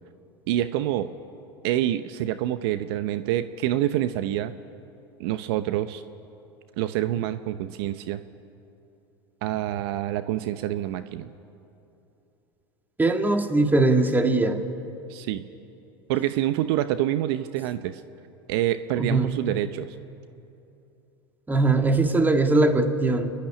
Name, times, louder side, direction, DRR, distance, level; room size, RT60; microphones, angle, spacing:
voice 1, 0.5-1.1 1.6-4.5 5.2-6.0 6.8-8.2 9.4-11.3 15.1-15.4 16.1-18.0 18.5-19.9, right 13 dB, 65° right, 11 dB, 0.8 m, -27 dB
voice 2, 13.0-14.6 19.0-19.3 21.5-23.3, right 2 dB, 15° right, 5 dB, 1.9 m, -21 dB
29.5 x 12.0 x 10.0 m, 2.8 s
hypercardioid pair, 90°, 14 cm